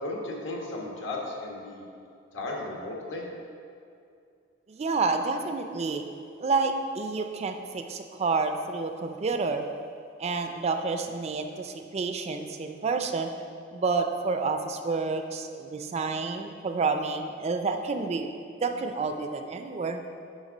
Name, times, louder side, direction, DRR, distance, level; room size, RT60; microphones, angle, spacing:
voice 1, 0.0-1.8 2.3-3.3, left 2 dB, 75° left, -2 dB, 1.4 m, -35 dB
voice 2, 4.7-6.0 6.4-9.6 10.2-13.3 13.7-18.3 18.6-20.0, right 4 dB, 35° right, 6 dB, 0.4 m, -29 dB
9.6 x 3.5 x 5.0 m, 2.4 s
head